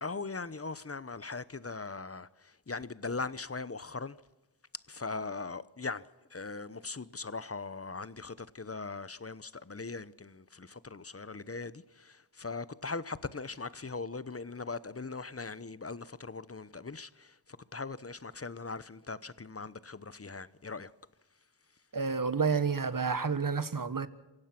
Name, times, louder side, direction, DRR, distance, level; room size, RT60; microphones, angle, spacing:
voice 1, 0.0-2.3 2.7-4.2 4.9-6.1 6.3-17.3 17.7-20.9, left 4 dB, 35° left, 0.9 m, -40 dB
voice 2, 21.9-24.1, right 5 dB, 50° right, 1.5 m, -30 dB
27.0 x 16.5 x 6.0 m
wide cardioid pair, 45°, 42 cm